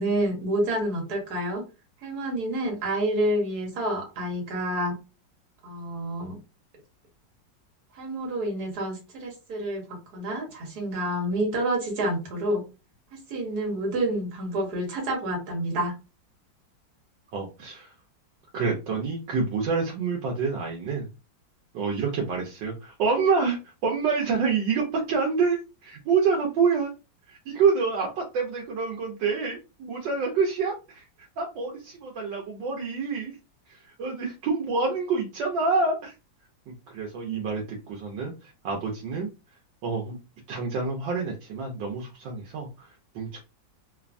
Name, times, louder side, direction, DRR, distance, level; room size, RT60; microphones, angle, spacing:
voice 1, 0.0-1.6 2.0-5.0 5.6-6.4 7.9-12.6 13.1-15.9, right 1 dB, 60° right, 1 dB, 1.5 m, -28 dB
voice 2, 17.3-17.9 18.5-21.1 21.7-26.9 27.3-31.0 31.4-33.4 33.7-36.1 36.7-39.3 39.8-40.2 40.5-43.4, right 5 dB, 80° right, 0 dB, 1.3 m, -27 dB
3.3 x 2.1 x 2.4 m, 0.29 s
omnidirectional pair, 2.0 m